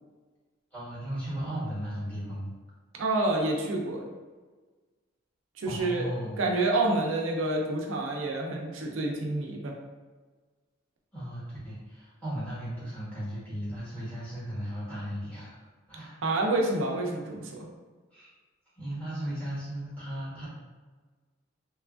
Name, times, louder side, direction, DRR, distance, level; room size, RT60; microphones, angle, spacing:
voice 1, 0.7-2.5 5.6-6.5 11.1-15.5 15.9-16.2 18.1-18.3 18.8-20.5, equal, 5° left, -10 dB, 1.0 m, -36 dB
voice 2, 2.9-4.1 5.6-6.0 6.4-9.8 16.2-17.7, right 2 dB, 75° right, 0 dB, 0.5 m, -28 dB
2.9 x 2.3 x 2.4 m, 1.4 s
head